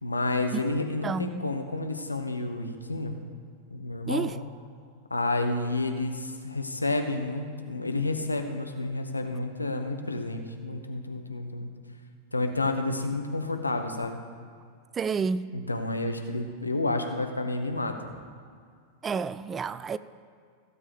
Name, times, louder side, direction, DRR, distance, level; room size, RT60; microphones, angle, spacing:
voice 1, 0.0-3.2 3.7-4.3 5.1-11.7 12.3-14.2 15.5-18.0, left 2 dB, 80° left, 1.1 m, -30 dB
voice 2, 1.0-1.5 4.1-4.4 14.9-15.5 19.0-20.0, right 5 dB, 20° right, 0.4 m, -30 dB
15.5 x 7.4 x 5.0 m
figure-of-eight pair, 90°, 0 cm